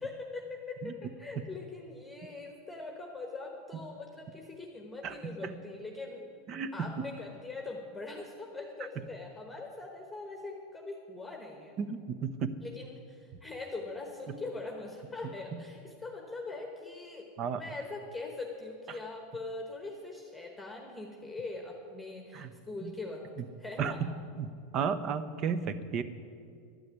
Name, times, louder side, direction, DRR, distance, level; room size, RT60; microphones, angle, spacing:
voice 1, 0.0-0.9 1.2-6.2 6.7-11.8 12.6-23.2 23.6-24.0, left 3 dB, 5° left, 1 dB, 1.2 m, -42 dB
voice 2, 5.0-5.6 6.5-7.0 11.8-12.5 15.5-15.6 17.4-17.6 18.9-19.0 22.3-22.5 22.8-22.9 23.8-24.1 24.4-24.5 24.7-26.0, right 6 dB, 35° right, 13 dB, 0.7 m, -33 dB
12.0 x 6.4 x 9.5 m, 2.2 s
supercardioid pair, 145°, 0 cm